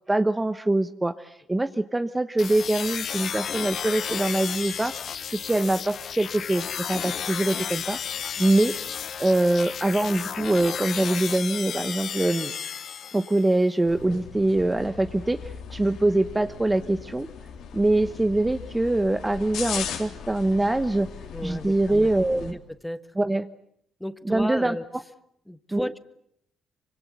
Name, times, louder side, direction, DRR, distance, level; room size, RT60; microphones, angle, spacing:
voice 1, 0.1-4.9 5.3-8.0 8.4-8.7 9.2-12.5 13.1-17.3 17.7-21.1 21.4-22.5 23.2-23.5 24.2-24.8 25.7-25.9, right 2 dB, 15° right, 10 dB, 1.1 m, -24 dB
sound 1, 2.4-13.6, left 8 dB, 60° left, 1.0 m, -33 dB
sound 2, 13.9-22.5, left 7 dB, 80° left, 3.6 m, -38 dB
voice 2, 21.3-22.1 22.5-23.1 24.0-24.8 25.5-26.0, left 1 dB, 5° left, 12 dB, 1.4 m, -33 dB
25.0 x 25.0 x 8.2 m, 0.72 s
cardioid pair, 90°, 0 cm